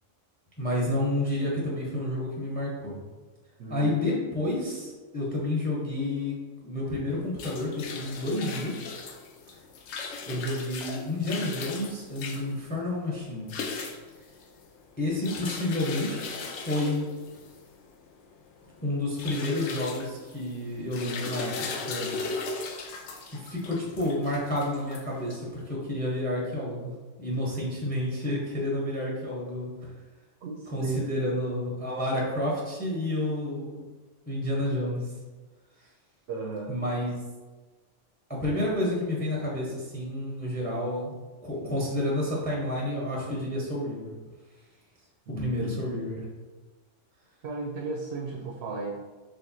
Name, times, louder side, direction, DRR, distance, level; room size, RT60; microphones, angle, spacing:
voice 1, 0.6-3.0 3.7-6.4 6.6-8.7 10.3-13.5 15.0-17.1 18.8-21.6 21.9-22.1 23.3-26.9 27.2-29.7 30.7-33.8 34.3-35.1 36.7-37.2 38.3-41.1 41.4-44.1 45.4-46.2, left 1 dB, 10° left, -4 dB, 0.7 m, -30 dB
sound 1, 7.1-25.6, left 4 dB, 70° left, 0.8 m, -38 dB
voice 2, 30.4-31.0 36.3-36.8 45.3-45.8 47.4-48.9, right 3 dB, 65° right, 0 dB, 0.7 m, -35 dB
4.4 x 3.3 x 2.7 m, 1.3 s
omnidirectional pair, 1.3 m